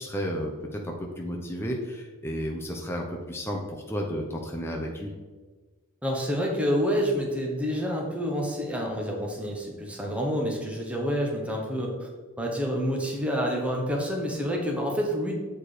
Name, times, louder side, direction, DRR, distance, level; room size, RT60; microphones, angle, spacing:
voice 1, 0.0-5.1, equal, 10° left, 0 dB, 0.7 m, -32 dB
voice 2, 6.0-12.1 12.4-15.3, equal, 5° right, -1 dB, 1.0 m, -28 dB
7.6 x 4.5 x 4.9 m, 1.3 s
head